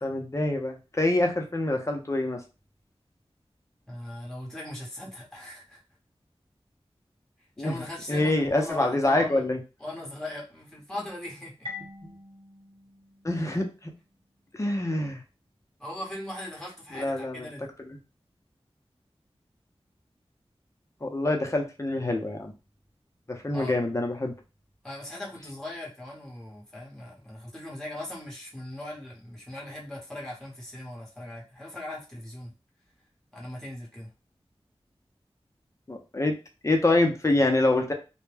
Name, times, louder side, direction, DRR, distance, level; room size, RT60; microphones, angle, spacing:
voice 1, 0.0-2.4 7.6-7.8 8.1-9.6 12.0-12.1 13.2-13.9 14.5-15.2 16.9-17.5 21.0-22.5 23.3-24.3 35.9-36.3 36.6-37.9, left 2 dB, 30° left, 2 dB, 0.6 m, -26 dB
voice 2, 3.9-5.8 7.4-9.5 9.8-11.7 15.8-17.7 23.5-23.7 24.8-32.5 33.3-34.1, left 1 dB, 5° left, -4 dB, 1.0 m, -39 dB
Marimba xylophone, 11.6-14.3, left 4 dB, 55° right, 1.1 m, -45 dB
2.2 x 2.1 x 3.2 m, 0.30 s
wide cardioid pair, 60°, 11 cm